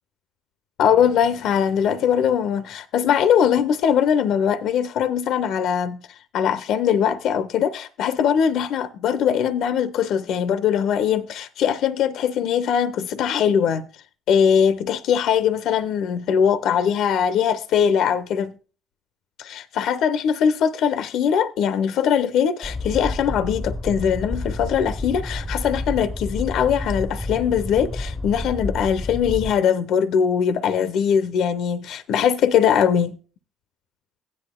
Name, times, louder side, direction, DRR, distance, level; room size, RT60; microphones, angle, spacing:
voice 1, 0.8-6.0 6.3-13.8 14.3-18.5 19.4-33.2, left 8 dB, 65° left, 0.6 m, -21 dB
sound 1, 22.6-29.5, left 2 dB, ahead, 0.7 m, -30 dB
16.0 x 9.9 x 2.2 m
hypercardioid pair, 55°, 0 cm